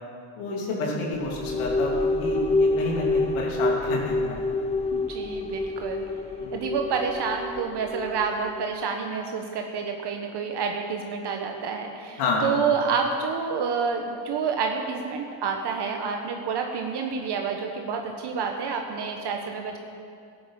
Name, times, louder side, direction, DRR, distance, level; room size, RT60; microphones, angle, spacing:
voice 1, 0.4-4.4 6.4-6.6 12.2-12.5, left 3 dB, 85° left, -2 dB, 3.2 m, -29 dB
sound 1, 1.1-8.7, left 2 dB, 15° left, 0.4 m, -27 dB
voice 2, 4.9-6.0 6.5-19.8, right 5 dB, 55° right, 3 dB, 1.3 m, -28 dB
13.0 x 10.0 x 7.7 m, 2.4 s
supercardioid pair, 90°, 48 cm